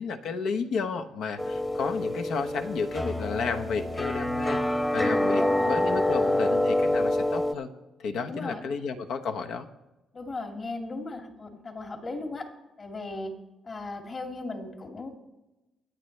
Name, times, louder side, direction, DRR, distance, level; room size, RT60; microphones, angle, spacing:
voice 1, 0.0-7.7 8.0-9.7, left 5 dB, 75° left, 5 dB, 1.1 m, -32 dB
sound 1, 1.4-7.5, left 1 dB, 10° left, 1.0 m, -26 dB
voice 2, 5.0-6.1 8.3-8.6 10.1-12.5 12.8-13.3 13.6-15.1, left 2 dB, 40° left, 3 dB, 2.2 m, -36 dB
24.0 x 9.1 x 3.3 m, 1.0 s
cardioid pair, 90°, 0 cm